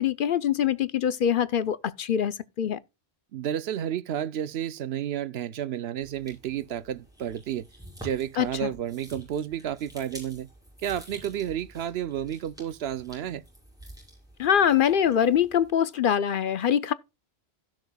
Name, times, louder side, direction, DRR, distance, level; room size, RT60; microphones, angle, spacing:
voice 1, 0.0-2.8 8.4-8.7 14.4-16.9, left 9 dB, 60° left, 0.7 m, -24 dB
voice 2, 3.3-7.7 8.0-10.5 10.8-13.4, right 10 dB, 75° right, 0.9 m, -31 dB
sound 1, 6.0-15.7, right 1 dB, 5° right, 5.9 m, -49 dB
16.5 x 6.4 x 2.2 m
omnidirectional pair, 1.1 m